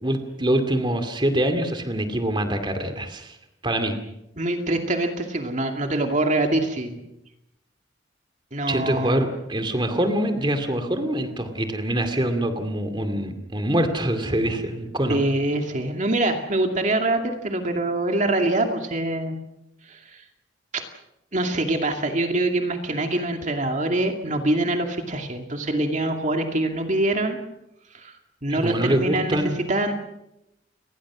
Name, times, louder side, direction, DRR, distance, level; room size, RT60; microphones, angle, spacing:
voice 1, 0.0-3.4 3.6-3.9 8.7-15.2 28.5-29.6, right 1 dB, 25° right, 7 dB, 2.4 m, -24 dB
voice 2, 4.4-7.0 8.5-9.2 15.1-19.4 19.9-20.2 20.7-20.8 21.3-27.4 27.9-28.1 28.4-29.9, right 2 dB, 40° right, 4 dB, 2.4 m, -24 dB
29.5 x 21.5 x 6.2 m, 0.87 s
head